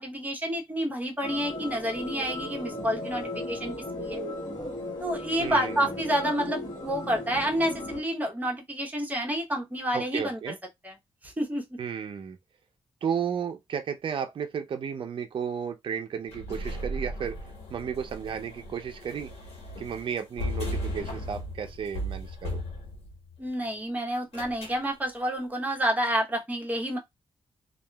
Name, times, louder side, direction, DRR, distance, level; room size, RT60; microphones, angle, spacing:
voice 1, 0.0-3.7 4.0-4.2 5.0-10.5 10.8-10.9 11.2-11.6 23.4-27.0, equal, 15° right, 0.8 m, -29 dB
sound 1, 1.2-8.0, left 1 dB, 45° left, 1.2 m, -36 dB
voice 2, 5.4-6.0 9.9-10.6 11.8-12.4 13.0-17.4 17.7-19.3 19.8-22.6, right 7 dB, 60° right, 0.5 m, -33 dB
sound 2, 16.3-23.4 24.3-24.8, equal, 85° left, 1.1 m, -36 dB
2.8 x 2.4 x 2.2 m
cardioid pair, 105°, 10 cm